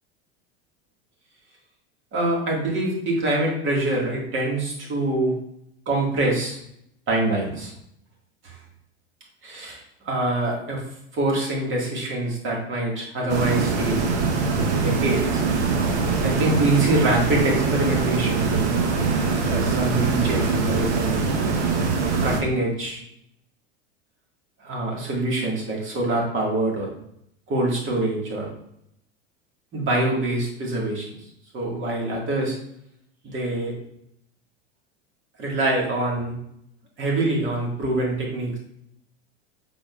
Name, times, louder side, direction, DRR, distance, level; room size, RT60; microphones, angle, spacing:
voice 1, 2.1-5.4 5.9-6.6 7.1-7.7 8.4-8.6 9.4-10.8 11.1-14.0 14.8-15.4 16.2-18.6 19.5-21.2 22.2-23.0 24.6-26.9 27.5-28.5 29.7-31.1 31.5-32.6 33.2-33.7 35.4-36.4 37.0-38.6, right 2 dB, 35° right, -2 dB, 1.9 m, -25 dB
sound 1, 13.3-22.4, right 4 dB, 80° right, 1.0 m, -23 dB
5.7 x 3.9 x 2.4 m, 0.73 s
hypercardioid pair, 100°, 33 cm